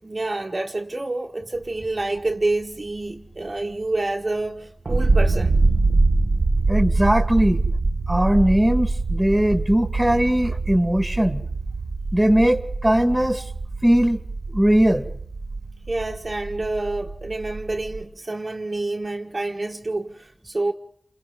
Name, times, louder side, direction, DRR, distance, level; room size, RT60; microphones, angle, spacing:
voice 1, 0.0-5.6 15.9-20.7, right 2 dB, 50° right, 1.6 m, -28 dB
sound 1, 4.9-18.0, right 3 dB, 80° right, 1.0 m, -24 dB
voice 2, 6.7-7.6 8.1-11.4 12.1-13.4 13.8-14.2 14.5-15.0, equal, 10° right, 2.3 m, -19 dB
29.0 x 28.0 x 4.1 m
wide cardioid pair, 60°, 0 cm